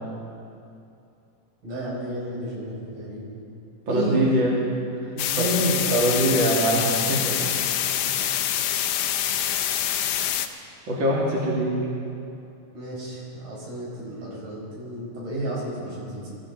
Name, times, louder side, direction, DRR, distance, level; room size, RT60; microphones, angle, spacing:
voice 1, 1.6-3.3 3.9-4.2 5.1-5.9 12.7-16.3, equal, 80° right, -5 dB, 6.4 m, -31 dB
voice 2, 3.9-4.6 5.4-5.5 5.9-7.5 8.0-8.2 10.9-11.7, right 1 dB, 40° right, -4 dB, 2.9 m, -23 dB
sound 1, 5.2-10.5, left 10 dB, 80° left, 2.2 m, -25 dB
25.0 x 14.5 x 3.9 m, 2.7 s
omnidirectional pair, 3.6 m